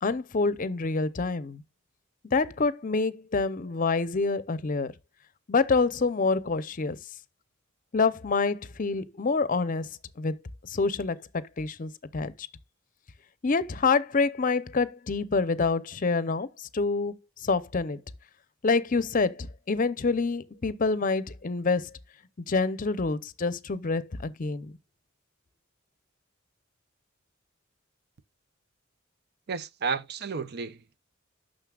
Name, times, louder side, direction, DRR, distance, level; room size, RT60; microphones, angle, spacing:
voice 1, 0.0-1.6 2.3-4.9 5.5-7.0 7.9-9.9 10.2-10.4 10.6-11.2 11.6-12.5 13.4-17.1 17.4-18.0 18.6-21.9 22.5-24.7, left 4 dB, 40° left, 0.6 m, -27 dB
voice 2, 29.5-31.0, right 5 dB, 50° right, 0.6 m, -32 dB
9.3 x 6.4 x 2.3 m
head